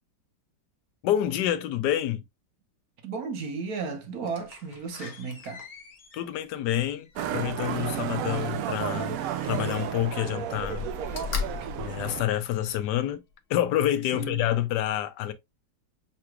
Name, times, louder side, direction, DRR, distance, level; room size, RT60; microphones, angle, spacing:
voice 1, 1.0-2.2 6.1-9.2 9.4-10.9 11.8-13.2 13.5-15.3, left 12 dB, 70° left, 1.1 m, -28 dB
voice 2, 3.0-5.6 11.5-11.7 14.1-14.4, right 5 dB, 60° right, 1.2 m, -34 dB
Slam, 4.2-8.1 9.2-10.1 10.5-12.8 13.3-13.4, left 6 dB, 50° left, 0.8 m, -39 dB
Motorcycle, 7.2-12.2, right 9 dB, 75° right, 0.8 m, -32 dB
5.8 x 3.0 x 2.2 m
omnidirectional pair, 2.0 m